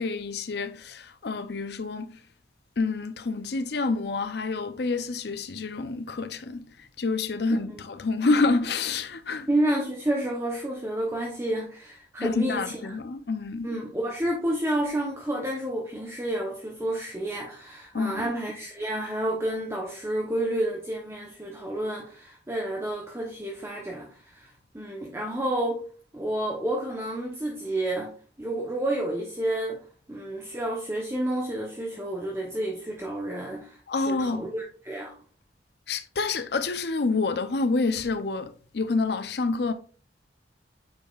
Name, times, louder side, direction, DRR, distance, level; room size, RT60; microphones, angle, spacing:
voice 1, 0.0-2.2 2.8-9.5 12.2-13.7 17.9-18.3 33.9-34.5 35.9-39.7, left 3 dB, 60° left, 0.6 m, -28 dB
voice 2, 9.5-12.8 13.6-25.8 26.1-28.1 28.4-29.8 30.1-35.1, right 1 dB, 15° right, 0.9 m, -30 dB
8.1 x 4.8 x 2.4 m
head